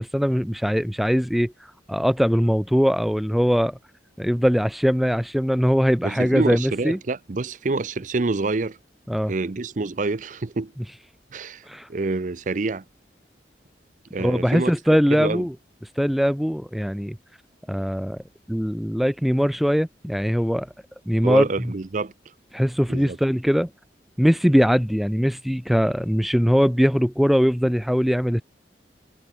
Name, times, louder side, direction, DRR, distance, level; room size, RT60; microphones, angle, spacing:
voice 1, 0.0-3.8 4.2-7.0 9.1-9.3 11.7-11.9 14.2-15.5 16.0-17.2 17.7-18.2 18.5-20.7 21.1-21.7 22.5-23.7 24.2-28.4, equal, ahead, 0.5 m, -21 dB
voice 2, 6.0-8.8 9.3-10.7 11.3-11.6 11.9-12.8 14.1-14.7 15.1-15.5 21.2-22.1 22.9-23.2, right 3 dB, 45° right, 0.6 m, -27 dB
head